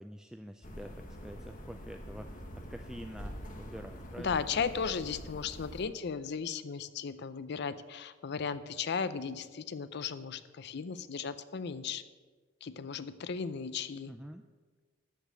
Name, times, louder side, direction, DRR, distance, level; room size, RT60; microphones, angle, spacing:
voice 1, 0.0-4.4 14.1-14.4, equal, 5° right, 6 dB, 0.3 m, -47 dB
sound 1, 0.6-5.8, equal, 45° left, 1.3 m, -45 dB
voice 2, 4.2-12.0 12.6-14.1, left 6 dB, 60° left, 13 dB, 0.5 m, -36 dB
13.0 x 5.1 x 7.4 m, 1.4 s
head